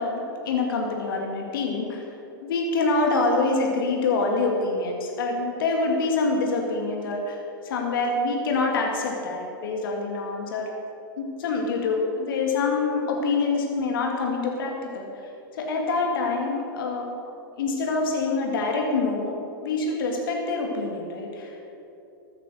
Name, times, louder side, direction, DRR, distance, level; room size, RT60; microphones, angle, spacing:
voice 1, 0.0-2.1 2.4-7.4 7.6-10.7 11.2-17.1 17.6-19.4 19.6-21.6, left 3 dB, 70° left, 1 dB, 2.2 m, -26 dB
14.0 x 9.1 x 6.4 m, 2.8 s
hypercardioid pair, 105°, 12 cm